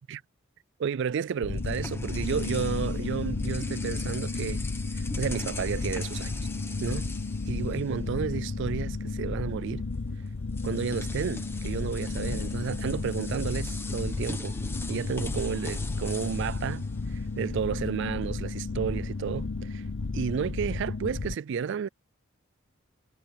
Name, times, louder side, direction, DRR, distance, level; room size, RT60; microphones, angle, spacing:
voice 1, 0.8-4.6 4.9-6.3 6.8-7.1 7.5-9.9 10.6-14.6 14.9-19.9 20.1-21.9, right 6 dB, 55° right, 0.3 m, -32 dB
sound 1, 1.1-8.3 8.6-8.8 9.9-10.0 10.5-17.7, left 2 dB, 10° left, 1.4 m, -43 dB
sound 2, 1.4-21.4, left 3 dB, 70° left, 0.8 m, -33 dB
head